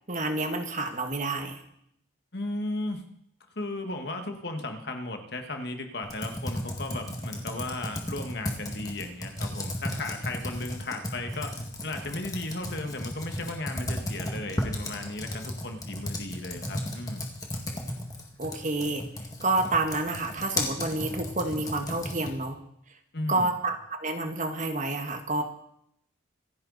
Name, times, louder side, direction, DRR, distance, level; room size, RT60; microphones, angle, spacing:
voice 1, 0.1-1.6 18.4-19.0 19.4-22.6 23.3-25.4, right 2 dB, 40° right, 6 dB, 1.5 m, -29 dB
voice 2, 2.3-3.0 3.6-11.6 11.8-17.3 23.1-23.5, left 2 dB, 55° left, 5 dB, 1.7 m, -35 dB
Computer keyboard, 6.0-22.5, left 1 dB, 20° left, 1.9 m, -35 dB
26.0 x 9.9 x 4.1 m, 0.73 s
head